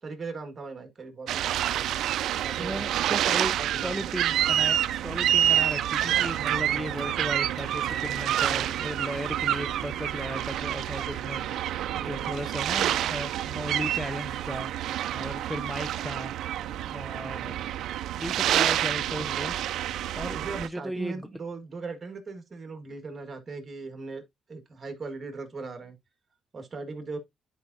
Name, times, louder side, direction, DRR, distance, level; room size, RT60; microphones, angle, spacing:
voice 1, 0.0-2.1 2.4-2.8 3.6-3.9 6.6-7.0 12.0-12.4 18.4-18.6 20.3-24.2 24.5-26.0 26.5-27.2, right 4 dB, 35° right, 1.8 m, -39 dB
sound 1, 1.3-20.7, right 11 dB, 80° right, 0.4 m, -28 dB
voice 2, 2.6-14.7 15.1-16.3 16.8-17.7 18.1-19.6 20.1-21.3, equal, ahead, 0.6 m, -36 dB
Crowd, 5.5-14.3, left 4 dB, 55° left, 2.6 m, -52 dB
10.0 x 4.7 x 2.7 m
cardioid pair, 90°, 0 cm